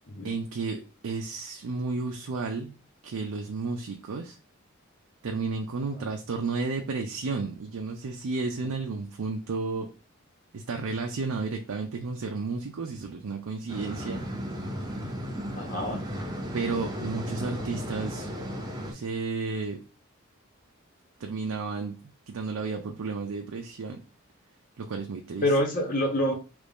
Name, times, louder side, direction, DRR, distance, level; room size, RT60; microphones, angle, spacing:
voice 1, 0.2-2.8 3.0-4.4 5.2-9.9 10.5-14.3 16.5-18.3 18.9-19.8 21.2-24.0 24.8-25.5, right 4 dB, 85° right, 3 dB, 0.5 m, -32 dB
sound 1, 13.7-18.9, equal, 20° right, 0.6 m, -35 dB
voice 2, 15.5-16.1 17.4-17.5 25.4-26.3, left 1 dB, 40° left, 0 dB, 0.9 m, -27 dB
3.1 x 2.6 x 3.4 m, 0.34 s
head